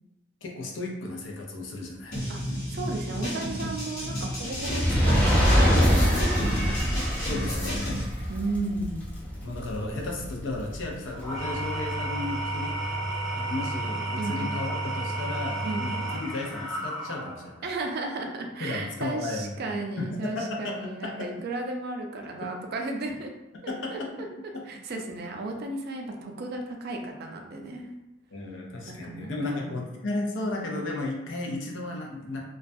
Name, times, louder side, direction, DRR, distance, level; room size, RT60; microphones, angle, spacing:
voice 1, 0.4-2.2 7.3-8.1 9.4-12.7 13.3-17.7 18.6-19.7 20.0-21.3 22.4-22.5 23.7-24.1 24.5-24.6 24.9-25.0 28.3-32.4, left 2 dB, 85° left, -1 dB, 0.5 m, -34 dB
sound 1, 2.1-8.0, equal, 55° left, 0.9 m, -33 dB
voice 2, 2.7-6.9 8.3-9.0 14.2-14.4 15.6-15.9 17.6-23.3 23.6-24.0 24.7-27.9 28.9-29.7, right 2 dB, 55° right, 3 dB, 0.4 m, -34 dB
Fire, 4.5-10.9 11.6-11.7, equal, 10° left, 0.4 m, -24 dB
Engine / Tools, 11.1-17.6, right 2 dB, 25° left, 0.9 m, -32 dB
2.3 x 2.1 x 2.5 m, 0.96 s
head